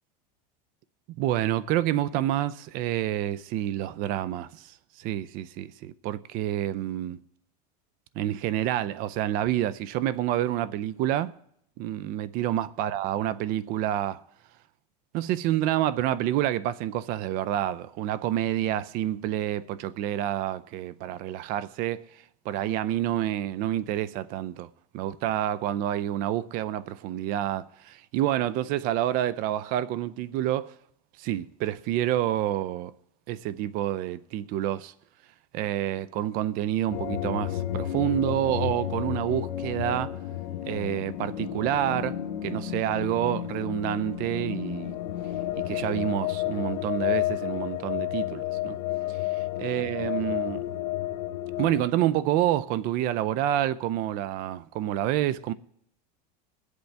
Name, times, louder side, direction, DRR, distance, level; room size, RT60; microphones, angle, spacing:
voice 1, 1.2-4.7 5.0-7.2 8.2-11.4 11.8-14.2 15.1-22.0 22.5-24.7 24.9-30.7 31.2-32.9 33.3-34.9 35.5-40.2 40.7-45.0 45.7-48.8 49.6-50.7 51.6-55.5, right 12 dB, 45° right, 0.5 m, -28 dB
sound 1, 36.9-51.9, left 13 dB, 85° left, 0.9 m, -31 dB
21.5 x 8.1 x 3.4 m
supercardioid pair, 150°, 21 cm